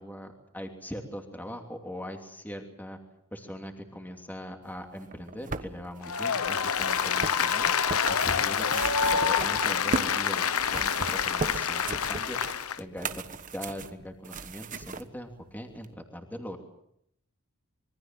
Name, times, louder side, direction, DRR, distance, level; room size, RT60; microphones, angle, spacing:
voice 1, 0.0-3.0 3.3-7.7 8.1-10.5 10.7-13.2 13.5-16.6, equal, 10° left, 4 dB, 2.9 m, -41 dB
sound 1, 5.0-10.2 10.5-15.0 15.8-15.9, right 3 dB, 35° right, 1.2 m, -37 dB
Applause, 6.0-12.8, left 7 dB, 80° left, 1.1 m, -27 dB
26.0 x 23.0 x 7.6 m, 0.76 s
head